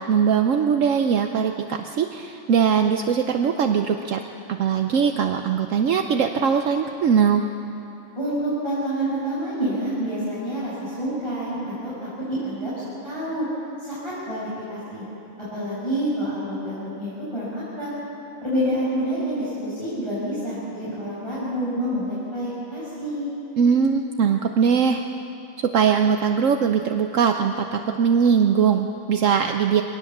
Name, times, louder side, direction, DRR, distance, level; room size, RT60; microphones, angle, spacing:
voice 1, 0.0-4.2 4.5-7.4 23.6-25.0 25.6-29.8, right 7 dB, 65° right, 5 dB, 1.1 m, -21 dB
voice 2, 8.2-12.7 13.0-13.5 13.9-15.0 15.5-17.9 18.4-23.3, right 1 dB, 20° left, -11 dB, 6.4 m, -28 dB
22.5 x 18.5 x 7.2 m, 2.9 s
omnidirectional pair, 1.5 m